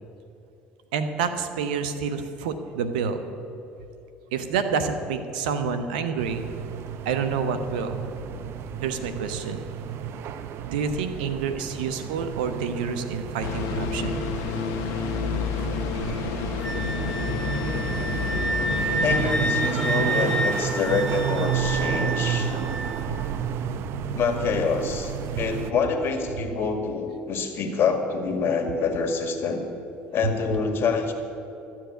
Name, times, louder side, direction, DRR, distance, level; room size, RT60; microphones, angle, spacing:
voice 1, 0.9-3.3 4.3-6.4 7.0-8.0 8.8-9.7 10.7-14.2 22.4-22.5 23.1-23.2 30.2-30.3, right 6 dB, 85° right, 10 dB, 0.9 m, -28 dB
sound 1, 6.2-25.7, right 8 dB, 65° right, 0.7 m, -32 dB
sound 2, 13.4-19.3, left 6 dB, 75° left, 1.0 m, -29 dB
Wind instrument woodwind instrument, 16.6-23.0, right 1 dB, 5° left, 1.9 m, -29 dB
voice 2, 19.0-22.5 24.1-29.6 30.1-31.1, left 5 dB, 55° left, 6 dB, 1.9 m, -26 dB
12.5 x 7.5 x 9.2 m, 2.8 s
hypercardioid pair, 75°, 5 cm